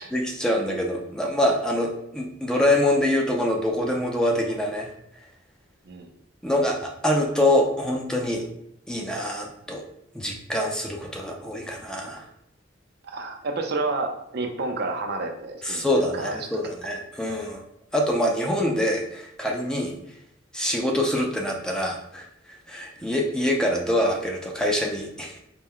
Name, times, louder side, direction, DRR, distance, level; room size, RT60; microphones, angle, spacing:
voice 1, 0.0-4.9 6.4-8.5 8.9-9.8 10.1-12.3 15.6-17.6 17.9-19.9 20.5-25.4, left 1 dB, 5° left, 0 dB, 0.4 m, -25 dB
voice 2, 13.0-16.5 23.0-23.1, right 3 dB, 55° right, 4 dB, 0.5 m, -30 dB
4.2 x 2.1 x 3.7 m, 0.75 s
head